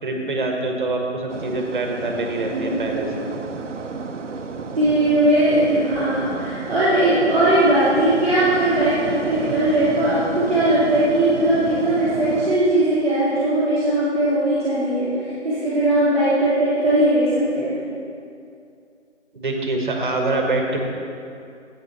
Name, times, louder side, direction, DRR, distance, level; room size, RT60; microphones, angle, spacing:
voice 1, 0.0-3.3 19.3-20.9, right 2 dB, 40° right, 2 dB, 1.3 m, -25 dB
sound 1, 1.3-12.6, right 4 dB, 85° right, 0.8 m, -32 dB
voice 2, 2.5-3.1 4.7-17.8, right 1 dB, ahead, -25 dB, 0.9 m, -19 dB
9.7 x 8.2 x 4.1 m, 2.5 s
figure-of-eight pair, 170°, 36 cm